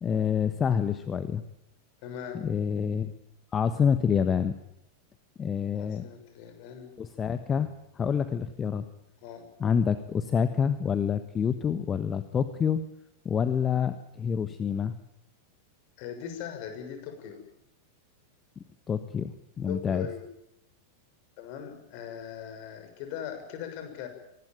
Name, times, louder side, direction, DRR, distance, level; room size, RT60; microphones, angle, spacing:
voice 1, 0.0-1.4 2.3-3.1 3.5-4.5 5.4-6.1 7.0-8.8 9.6-12.8 13.2-14.9 18.9-20.1, left 7 dB, 20° left, 11 dB, 1.3 m, -27 dB
voice 2, 2.0-2.4 5.8-7.0 9.2-9.4 16.0-17.4 19.7-20.2 21.4-24.1, left 8 dB, 45° left, 7 dB, 6.5 m, -40 dB
24.5 x 19.5 x 9.1 m, 0.80 s
figure-of-eight pair, 90°, 0 cm